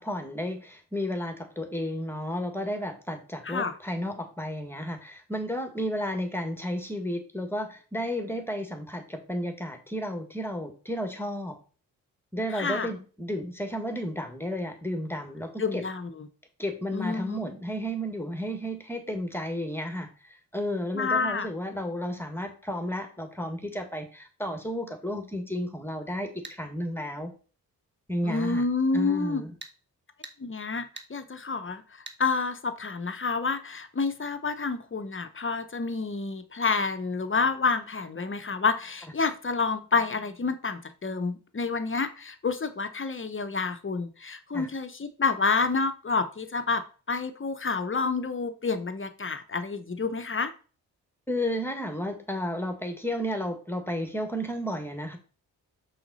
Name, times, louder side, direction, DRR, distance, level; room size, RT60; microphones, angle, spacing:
voice 1, 0.0-11.6 12.3-15.8 16.6-27.3 28.1-28.6 28.9-29.5 44.5-44.7 51.3-55.2, equal, 5° left, 6 dB, 1.8 m, -32 dB
voice 2, 12.5-12.9 15.6-16.3 16.9-17.4 20.9-21.5 28.2-29.4 30.4-31.8 32.2-46.8 47.1-50.5, left 4 dB, 30° left, 10 dB, 1.0 m, -29 dB
sound 1, 26.4-26.6 29.6-29.8 30.2-30.4 31.0-31.1 32.1-32.2, right 3 dB, 25° right, 1.3 m, -42 dB
5.8 x 5.0 x 4.2 m, 0.37 s
supercardioid pair, 45°, 40 cm